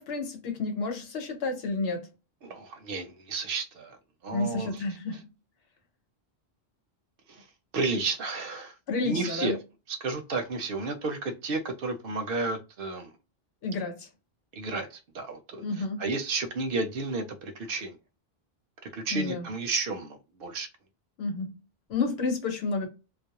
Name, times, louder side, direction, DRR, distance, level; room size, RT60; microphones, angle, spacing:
voice 1, 0.0-2.1 4.3-5.3 8.9-9.5 13.6-14.1 15.6-16.0 19.1-19.5 21.2-21.5 21.9-22.9, left 3 dB, 80° left, 1.0 m, -30 dB
voice 2, 2.4-4.0 4.2-4.7 7.3-7.4 7.7-8.7 9.0-9.6 9.9-13.1 14.5-15.6 16.0-18.0 18.8-20.7, right 3 dB, 65° right, 0.7 m, -32 dB
2.3 x 2.0 x 2.8 m
omnidirectional pair, 1.0 m